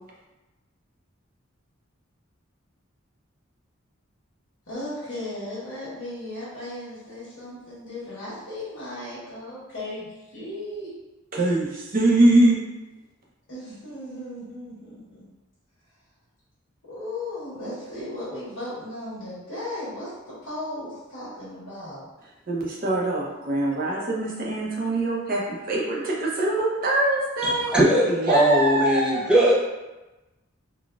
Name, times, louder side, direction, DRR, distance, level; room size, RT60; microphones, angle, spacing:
voice 1, 4.7-10.9 13.5-15.2 16.8-20.1 20.4-22.0, left 1 dB, 70° left, -11 dB, 1.2 m, -36 dB
voice 2, 11.3-12.6 22.5-28.0 28.3-29.3, right 1 dB, 45° right, -3 dB, 0.7 m, -23 dB
voice 3, 27.4-29.6, right 1 dB, 5° right, -6 dB, 0.5 m, -20 dB
3.8 x 2.2 x 2.4 m, 1.1 s
head